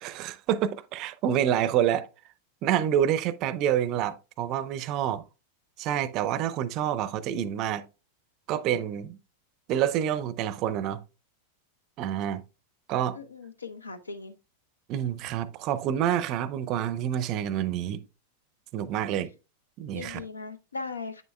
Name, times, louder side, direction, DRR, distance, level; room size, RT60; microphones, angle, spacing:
voice 1, 0.0-2.1 2.6-5.2 5.8-7.9 8.5-9.2 9.7-11.0 12.0-12.4 12.9-13.2 14.9-18.0 18.7-19.3 19.8-20.2, right 10 dB, 40° right, 0.5 m, -27 dB
voice 2, 13.1-14.3 19.9-21.2, left 4 dB, 75° left, 0.6 m, -38 dB
8.5 x 6.8 x 2.2 m
figure-of-eight pair, 90°, 0 cm